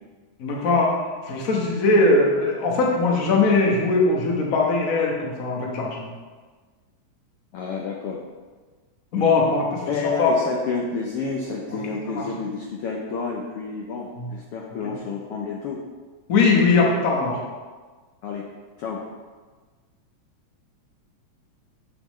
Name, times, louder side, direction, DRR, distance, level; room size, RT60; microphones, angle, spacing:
voice 1, 0.4-1.0 1.2-6.1 9.1-10.3 12.1-12.2 14.2-14.3 16.3-17.4, left 3 dB, 70° left, -1 dB, 0.8 m, -20 dB
voice 2, 7.5-8.2 9.9-15.8 18.2-18.5 18.8-19.0, left 4 dB, 85° left, -1 dB, 1.2 m, -29 dB
7.3 x 6.8 x 3.1 m, 1.4 s
omnidirectional pair, 3.4 m